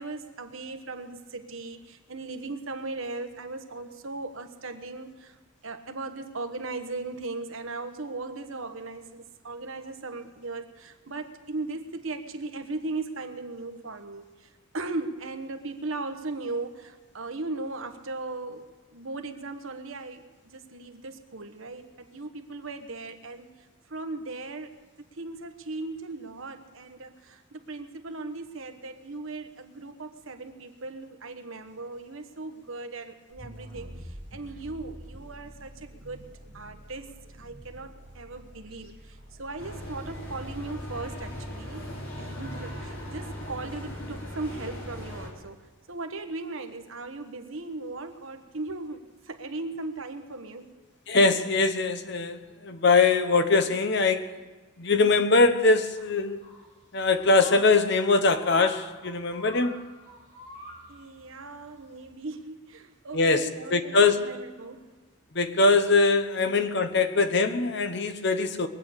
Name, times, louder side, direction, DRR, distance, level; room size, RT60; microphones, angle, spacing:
voice 1, 0.0-5.4 5.6-23.5 23.9-24.8 25.2-41.8 42.2-45.6 45.9-50.7 60.9-65.0 66.3-66.4, right 3 dB, 75° right, 7 dB, 1.2 m, -38 dB
sound 1, 33.3-41.5, equal, 50° right, 2.2 m, -47 dB
sound 2, 39.6-45.3, left 1 dB, 90° left, 3.5 m, -38 dB
voice 2, 51.1-54.3 54.8-56.4 56.9-59.8 63.1-64.2 65.3-68.7, left 3 dB, 55° left, 9 dB, 0.9 m, -22 dB
sound 3, 56.0-62.0, left 1 dB, 30° left, 2.8 m, -48 dB
22.0 x 8.6 x 6.6 m, 1.3 s
head